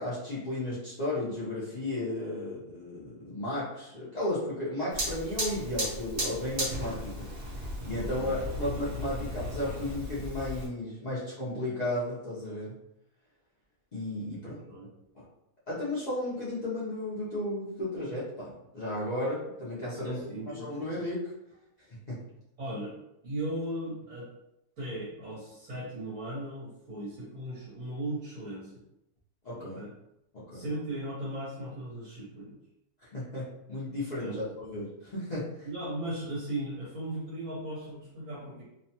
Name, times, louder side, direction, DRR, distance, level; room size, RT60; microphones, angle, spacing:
voice 1, 0.0-7.3 7.8-12.7 13.9-14.6 15.7-20.2 20.5-21.3 22.1-22.2 29.4-29.8 30.3-30.6 33.0-35.5, left 1 dB, 55° left, -10 dB, 0.5 m, -34 dB
Fire, 4.9-10.7, equal, 45° right, 1.4 m, -35 dB
voice 2, 7.9-8.3 14.4-14.9 19.9-20.8 22.6-22.9 23.2-24.3 24.8-28.8 29.6-29.9 30.5-32.5 34.2-34.4 35.6-38.6, right 1 dB, 65° right, -8 dB, 1.4 m, -37 dB
3.0 x 2.1 x 2.8 m, 0.84 s
omnidirectional pair, 1.6 m